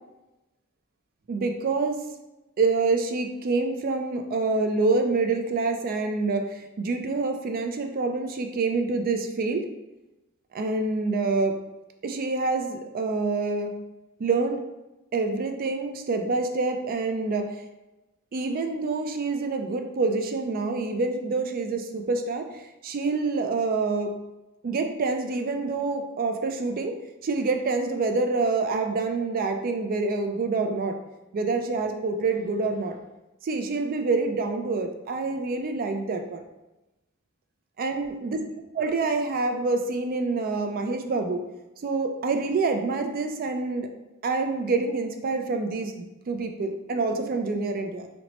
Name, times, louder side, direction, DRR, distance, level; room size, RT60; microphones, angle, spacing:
voice 1, 1.3-2.0 2.6-9.6 10.5-11.6 12.0-13.7 14.2-14.6 15.1-17.6 18.3-22.5 22.8-24.2 24.6-27.0 27.2-31.0 31.3-33.0 33.4-36.4 37.8-38.4 38.7-41.4 41.8-43.9 44.2-48.1, right 3 dB, 40° right, 5 dB, 0.3 m, -26 dB
4.1 x 2.1 x 2.9 m, 1.0 s
head